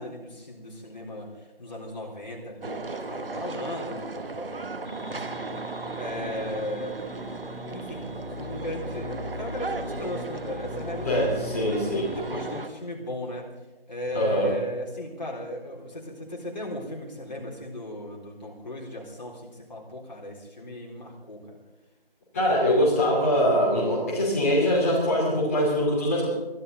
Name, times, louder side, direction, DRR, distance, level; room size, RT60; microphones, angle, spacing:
voice 1, 0.0-5.5 5.9-7.0 7.7-11.4 12.1-13.5 13.9-21.6, left 1 dB, 45° left, -2 dB, 3.8 m, -36 dB
sound 1, 2.6-12.7, right 3 dB, 65° right, 1.2 m, -36 dB
sound 2, 4.8-12.6, left 1 dB, 75° left, 2.8 m, -40 dB
voice 2, 11.0-12.1 14.1-14.5 22.3-26.3, equal, 15° left, -5 dB, 2.8 m, -23 dB
22.5 x 11.5 x 4.0 m, 1.1 s
figure-of-eight pair, 170°, 30 cm